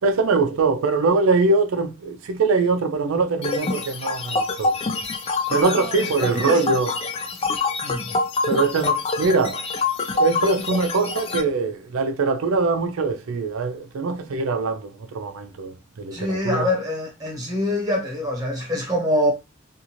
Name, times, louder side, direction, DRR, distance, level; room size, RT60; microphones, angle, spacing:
voice 1, 0.0-4.7 5.5-6.9 8.5-9.6 10.1-16.7, right 3 dB, 75° right, 0.4 m, -22 dB
sound 1, 3.4-11.4, left 3 dB, 30° left, 0.3 m, -26 dB
voice 2, 5.8-6.6 7.8-8.1 16.1-19.3, left 1 dB, 15° right, 1.1 m, -25 dB
2.5 x 2.5 x 2.9 m
head